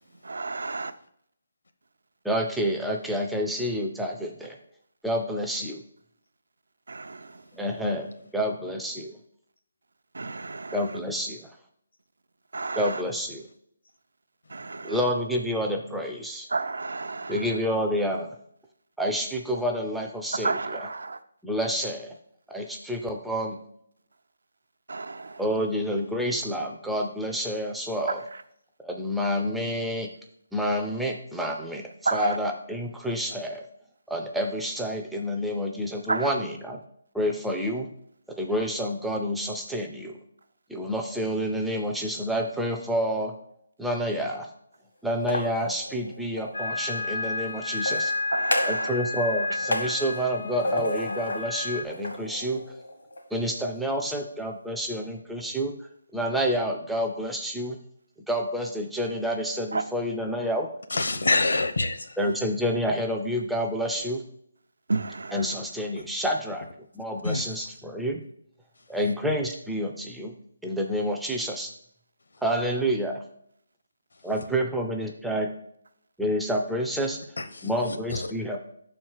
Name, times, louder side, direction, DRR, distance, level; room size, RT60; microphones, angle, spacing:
voice 1, 0.2-0.8 6.9-7.2 10.1-10.8 12.5-13.0 14.5-14.9 16.5-17.4 20.4-21.2 24.9-25.4 32.1-32.4 36.1-36.3 48.3-48.9 49.8-49.9 59.7-59.8 64.9-65.3, right 3 dB, 80° right, 0.7 m, -30 dB
voice 2, 2.2-4.6 5.0-5.8 7.5-8.1 8.3-9.1 10.7-11.4 12.8-13.5 14.8-16.5 17.3-18.3 19.0-20.9 21.4-22.1 22.5-23.6 25.4-28.2 28.8-30.1 30.5-33.6 34.1-36.8 37.1-37.9 38.3-40.2 40.7-43.3 43.8-44.5 45.0-48.1 48.6-52.6 53.3-55.7 56.1-57.8 58.3-60.7 62.2-64.2 65.3-66.7 66.9-68.2 68.9-70.3 70.6-71.7 72.4-73.2 74.2-75.5 76.2-77.2 77.6-78.6, equal, ahead, 0.4 m, -28 dB
sound 1, 45.1-46.6 47.7-48.9 49.2-51.5 51.9-53.2, left 1 dB, 85° left, 1.8 m, -32 dB
sound 2, 46.5-51.8, left 3 dB, 55° left, 0.5 m, -31 dB
voice 3, 60.9-62.1 67.2-67.7 77.4-77.7 78.1-78.2, left 3 dB, 70° left, 0.9 m, -26 dB
5.8 x 4.5 x 6.4 m
hypercardioid pair, 180°, 0 cm